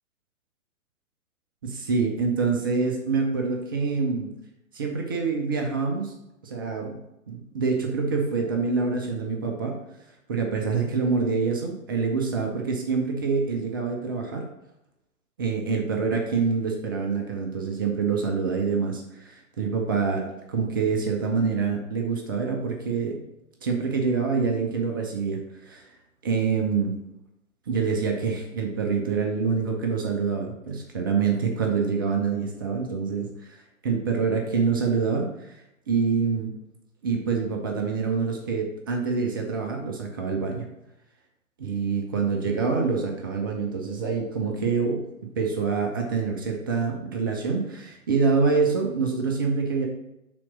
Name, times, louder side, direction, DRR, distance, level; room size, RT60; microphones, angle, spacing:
voice 1, 1.6-4.3 4.7-6.1 6.4-7.0 7.3-9.8 10.3-14.5 15.4-23.2 23.6-25.8 26.2-27.0 27.7-33.6 33.8-36.5 37.0-40.7 41.6-45.0 45.4-49.9, right 5 dB, 15° right, 2 dB, 0.4 m, -26 dB
5.9 x 3.8 x 6.0 m, 0.88 s
figure-of-eight pair, 120°, 41 cm